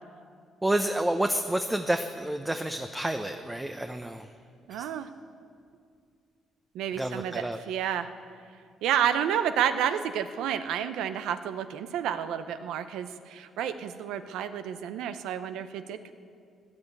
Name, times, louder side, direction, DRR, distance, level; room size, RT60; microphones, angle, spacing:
voice 1, 0.6-4.3 7.0-7.6, right 1 dB, 10° right, 6 dB, 0.7 m, -29 dB
voice 2, 4.7-5.1 6.7-8.1 8.8-16.1, right 9 dB, 90° right, 11 dB, 0.8 m, -30 dB
15.5 x 11.0 x 8.3 m, 2.3 s
cardioid pair, 90°, 0 cm